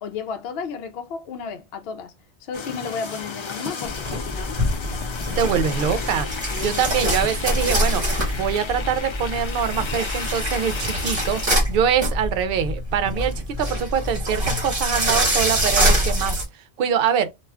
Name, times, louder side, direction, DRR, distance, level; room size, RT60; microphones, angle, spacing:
voice 1, 0.0-2.1 2.4-4.6 6.5-6.8, left 5 dB, 70° left, 0.8 m, -33 dB
sound 1, 2.5-11.5, left 5 dB, 50° left, 0.3 m, -33 dB
sound 2, 3.9-16.4, equal, 35° right, 1.2 m, -25 dB
voice 2, 5.4-6.3 6.6-8.0 8.3-11.4 11.7-16.4 16.8-17.3, right 8 dB, 60° right, 0.7 m, -24 dB
2.4 x 2.3 x 3.2 m
omnidirectional pair, 1.1 m